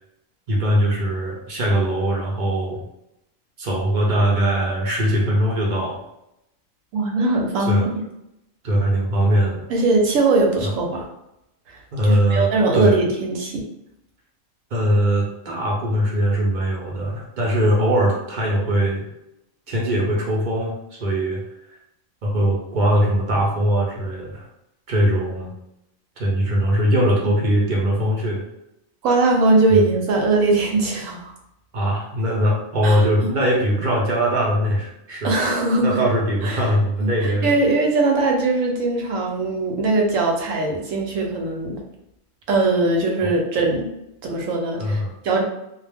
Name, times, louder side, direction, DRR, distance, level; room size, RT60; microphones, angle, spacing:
voice 1, 0.5-2.8 3.6-6.0 7.7-7.9 8.6-9.6 10.6-10.7 11.9-13.0 14.7-19.1 19.7-21.4 21.7-21.8 22.2-24.4 24.9-25.5 26.2-28.4 29.7-29.9 31.7-35.3 35.8-37.5 43.2-43.3 44.8-45.1, equal, 50° right, -3 dB, 0.6 m, -21 dB
voice 2, 6.9-8.0 9.7-11.1 12.0-13.6 27.2-27.3 29.0-31.3 32.8-33.0 35.2-36.0 36.4-36.6 37.0-41.8 42.5-43.9 44.2-45.4, right 3 dB, 75° right, 1 dB, 1.0 m, -20 dB
2.4 x 2.1 x 3.3 m, 0.84 s
omnidirectional pair, 1.4 m